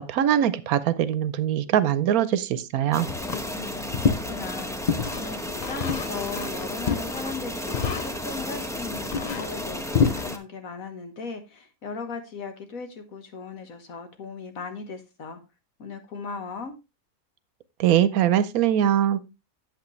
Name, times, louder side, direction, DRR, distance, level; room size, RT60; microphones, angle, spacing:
voice 1, 0.0-3.1 17.8-19.2, right 10 dB, 85° right, 1.2 m, -22 dB
sound 1, 2.9-10.4, equal, 5° left, 0.7 m, -33 dB
sound 2, 3.1-10.2, left 6 dB, 50° left, 0.5 m, -29 dB
voice 2, 3.4-15.4 15.8-16.7, left 4 dB, 75° left, 1.8 m, -37 dB
8.3 x 8.2 x 3.1 m
omnidirectional pair, 1.5 m